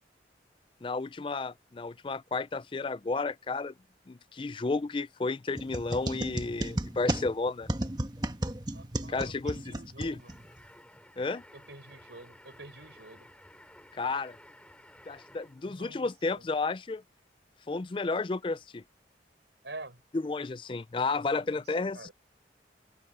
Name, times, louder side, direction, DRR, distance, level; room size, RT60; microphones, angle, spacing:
voice 1, 0.8-3.7 4.1-7.7 9.1-10.2 11.2-11.4 13.9-14.4 15.1-17.0 17.7-18.8 20.1-22.1, left 3 dB, 30° left, 0.4 m, -32 dB
sound 1, 5.5-10.7, right 1 dB, 25° right, 1.2 m, -34 dB
voice 2, 8.7-10.3 11.5-13.3 15.6-16.5 19.6-20.0 21.3-22.1, right 2 dB, 75° right, 6.9 m, -48 dB
sound 2, 10.2-15.7, left 1 dB, 5° left, 5.6 m, -55 dB
open air
head